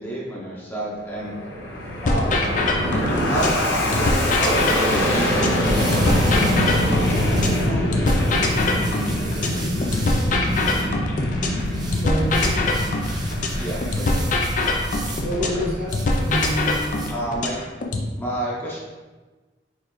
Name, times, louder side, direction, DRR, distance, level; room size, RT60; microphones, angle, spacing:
voice 1, 0.0-1.3 2.0-2.6 3.2-3.6 3.9-8.7 13.6-14.2 15.4-15.6 17.1-17.6 18.2-18.8, right 1 dB, 10° left, -6 dB, 0.8 m, -31 dB
Fixed-wing aircraft airplane, 0.9-17.6, left 1 dB, 85° left, 0.8 m, -24 dB
sound 1, 2.0-3.6 3.9-7.6 7.9-11.6 11.9-15.6 15.9-18.0, left 2 dB, 45° left, 0.5 m, -23 dB
sound 2, 5.3-17.2, right 1 dB, 25° right, 0.5 m, -35 dB
voice 2, 12.0-12.6 15.2-17.4, equal, 55° right, -6 dB, 1.5 m, -27 dB
4.4 x 3.1 x 3.0 m, 1.3 s
head